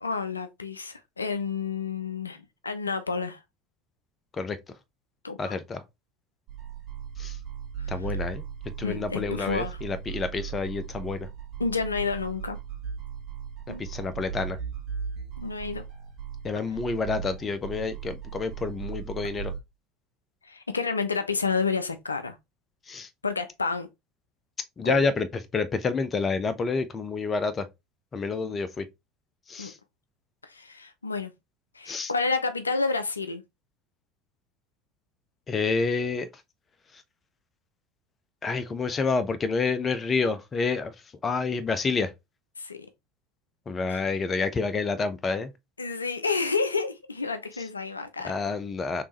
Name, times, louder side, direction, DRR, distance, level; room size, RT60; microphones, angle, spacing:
voice 1, 0.0-3.4 5.2-5.6 8.8-9.8 11.6-12.6 13.7-13.8 15.4-15.8 20.4-22.4 23.2-23.9 24.8-25.1 28.4-28.5 29.6-29.7 30.4-31.3 31.8-33.4 42.6-42.8 43.9-44.0 45.8-48.3, left 4 dB, 85° left, 0.3 m, -30 dB
voice 2, 5.4-5.8 7.2-7.4 7.9-8.4 8.8-11.3 13.8-14.6 16.4-19.5 22.9-23.1 24.8-25.3 25.5-27.7 28.1-28.8 29.5-29.8 31.9-32.1 35.5-36.3 38.4-40.9 41.2-42.1 43.7-45.5 48.2-49.0, left 4 dB, 25° left, 0.6 m, -28 dB
sound 1, 6.5-19.6, right 7 dB, 45° right, 1.5 m, -37 dB
3.5 x 3.1 x 2.9 m
figure-of-eight pair, 70°, 0 cm